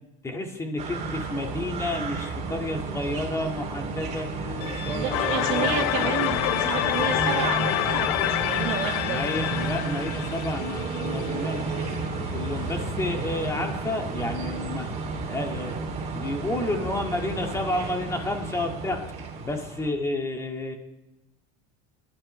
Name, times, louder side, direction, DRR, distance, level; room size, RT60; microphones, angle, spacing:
voice 1, 0.2-6.1 9.0-11.6 12.3-14.9 15.3-15.8 16.1-19.0 19.4-20.8, left 2 dB, 15° left, 3 dB, 2.0 m, -31 dB
sound 1, 0.8-19.9, right 3 dB, 35° right, 3.1 m, -32 dB
Bowed string instrument, 4.6-9.6, left 9 dB, 50° left, 1.4 m, -36 dB
voice 2, 4.9-9.2, right 11 dB, 65° right, 6 dB, 1.6 m, -30 dB
sound 2, 5.1-12.0, left 15 dB, 80° left, 0.7 m, -27 dB
29.0 x 12.0 x 3.4 m, 0.98 s
supercardioid pair, 140°, 20 cm